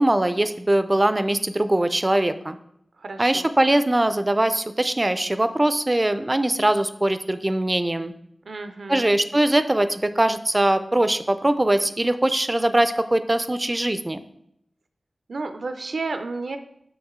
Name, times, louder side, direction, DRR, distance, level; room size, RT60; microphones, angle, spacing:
voice 1, 0.0-2.6 3.2-8.1 8.9-14.2, right 1 dB, 25° right, 12 dB, 0.4 m, -21 dB
voice 2, 3.0-3.5 8.4-9.1 15.3-16.6, right 3 dB, 80° right, 8 dB, 0.5 m, -32 dB
6.3 x 6.1 x 3.7 m, 0.76 s
wide cardioid pair, 75°, 0 cm